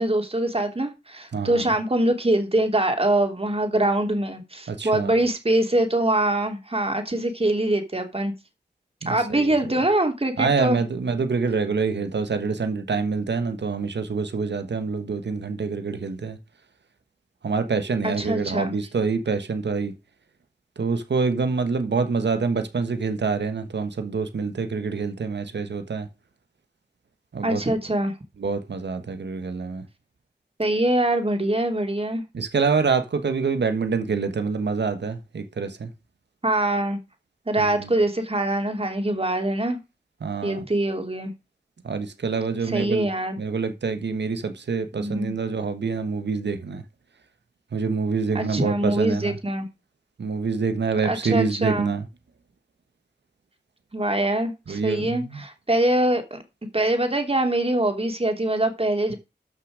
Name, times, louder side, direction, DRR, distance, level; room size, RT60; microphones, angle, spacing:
voice 1, 0.0-8.3 9.0-10.8 18.0-18.7 27.4-28.1 30.6-32.2 36.4-37.0 37.5-39.8 40.4-41.3 42.7-43.4 45.0-45.3 48.3-49.7 51.0-51.9 53.9-56.4 56.7-59.2, right 1 dB, 35° right, 3.1 m, -23 dB
voice 2, 1.3-1.7 4.7-5.2 9.0-9.5 10.4-16.4 17.4-19.9 20.8-26.1 27.3-27.8 28.4-29.9 32.3-35.9 37.6-37.9 40.2-40.6 41.8-43.1 43.4-46.8 47.7-49.4 50.2-52.1 54.7-55.4, right 4 dB, 90° right, 1.4 m, -26 dB
13.0 x 6.2 x 5.0 m
wide cardioid pair, 60°, 18 cm